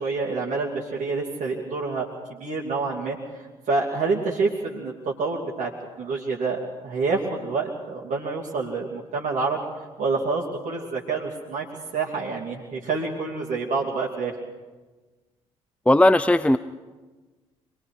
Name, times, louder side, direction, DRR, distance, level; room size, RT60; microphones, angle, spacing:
voice 1, 0.0-5.7 6.0-9.6 10.0-11.7 11.9-14.4, right 4 dB, 50° right, -3 dB, 2.8 m, -27 dB
voice 2, 15.9-16.6, left 1 dB, 10° left, 13 dB, 0.6 m, -17 dB
26.0 x 21.0 x 4.9 m, 1.3 s
hypercardioid pair, 45°, 16 cm